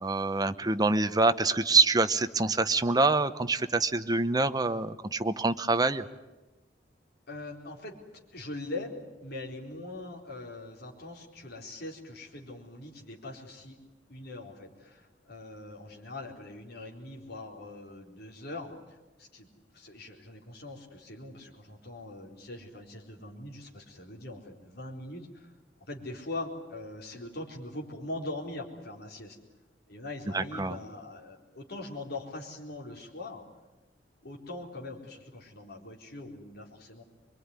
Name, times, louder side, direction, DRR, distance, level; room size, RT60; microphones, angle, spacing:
voice 1, 0.0-6.0 30.3-30.8, right 3 dB, 20° right, 10 dB, 0.8 m, -26 dB
voice 2, 7.3-8.0 8.3-13.8 14.1-19.5 19.7-25.5 25.9-29.4 29.9-33.4 34.2-37.0, left 2 dB, 60° left, 0 dB, 4.2 m, -42 dB
24.5 x 22.5 x 9.7 m, 1.1 s
head